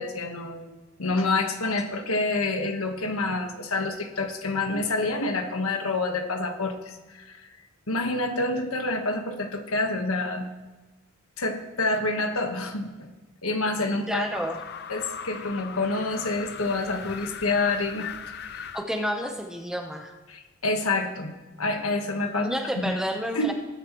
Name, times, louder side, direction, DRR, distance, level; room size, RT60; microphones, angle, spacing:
voice 1, 0.0-7.5 7.9-10.5 11.4-13.1 13.4-14.2 14.9-18.7 20.3-22.5 22.8-23.0 23.3-23.5, left 2 dB, 85° left, 5 dB, 1.4 m, -28 dB
voice 2, 14.1-14.6 18.7-20.1 22.3-23.5, equal, 5° right, 3 dB, 0.9 m, -30 dB
sound 1, 14.3-18.8, left 7 dB, 50° left, 0.6 m, -39 dB
20.0 x 9.9 x 3.1 m, 1.1 s
head